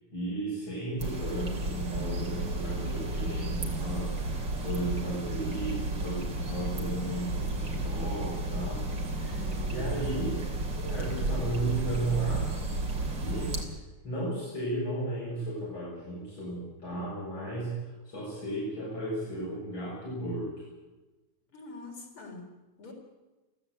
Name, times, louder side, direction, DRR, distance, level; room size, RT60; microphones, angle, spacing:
voice 1, 0.1-8.8 9.1-10.4 10.7-12.5 13.2-13.5 14.0-20.5, right 2 dB, 65° left, -7 dB, 8.5 m, -34 dB
sound 1, 1.0-13.6, right 2 dB, 60° right, 3.8 m, -32 dB
voice 2, 9.2-9.9 21.5-22.5 22.8-22.9, left 3 dB, 85° left, 1 dB, 4.8 m, -45 dB
23.5 x 15.5 x 8.0 m, 1.1 s
omnidirectional pair, 2.3 m